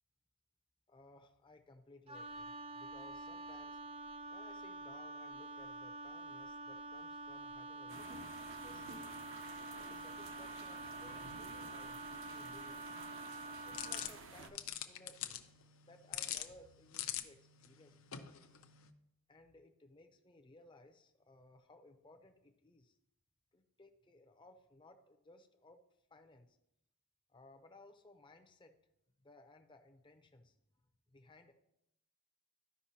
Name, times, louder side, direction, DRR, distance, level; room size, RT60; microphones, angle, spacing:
voice 1, 0.9-3.8 4.3-9.1 9.7-12.9 13.5-15.6 15.8-18.3 19.3-23.0 23.5-25.8 26.1-26.6 27.3-28.8 29.2-30.6 31.1-31.5, left 2 dB, 20° left, 5 dB, 0.6 m, -61 dB
Wind instrument woodwind instrument, 2.1-14.2, right 2 dB, 25° right, 0.4 m, -47 dB
sound 1, 7.9-14.5, right 3 dB, 60° right, 0.8 m, -52 dB
sound 2, 13.7-18.9, left 11 dB, 70° left, 0.6 m, -45 dB
13.5 x 5.4 x 2.8 m, 0.81 s
head